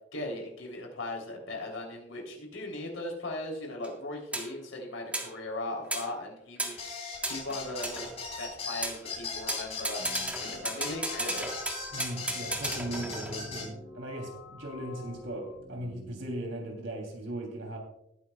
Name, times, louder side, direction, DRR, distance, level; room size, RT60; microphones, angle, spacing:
voice 1, 0.1-6.8 7.3-10.0 10.4-11.5, left 2 dB, 90° left, 0 dB, 3.6 m, -38 dB
sound 1, 3.8-3.9 4.3-4.5 5.1-5.3 5.9-6.1 6.6-6.8 7.2-8.5 8.8-9.0 9.5-13.6, right 1 dB, 5° right, 1.6 m, -35 dB
sound 2, 6.8-13.7, left 4 dB, 30° left, 3.8 m, -38 dB
sound 3, 10.0-16.3, left 3 dB, 35° right, 4.1 m, -48 dB
voice 2, 11.9-17.8, right 1 dB, 70° right, 2 dB, 3.3 m, -38 dB
19.0 x 9.9 x 2.4 m, 0.79 s
head